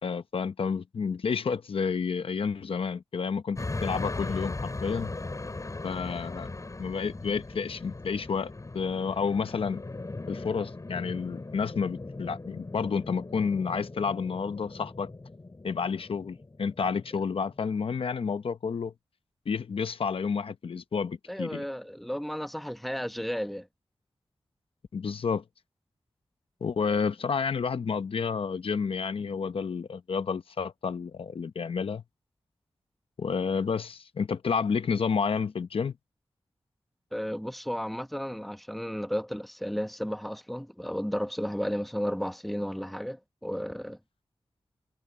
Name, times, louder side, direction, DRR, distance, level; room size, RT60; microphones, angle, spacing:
voice 1, 0.0-5.1 5.8-6.5 6.8-9.8 10.3-15.1 15.6-18.9 19.5-21.6 24.9-25.4 26.6-32.0 33.2-35.9, left 5 dB, 80° left, 0.8 m, -30 dB
sound 1, 3.6-17.8, left 2 dB, 35° left, 6.5 m, -39 dB
voice 2, 21.3-23.7 37.1-44.0, equal, ahead, 1.1 m, -33 dB
wide cardioid pair, 105°, 9 cm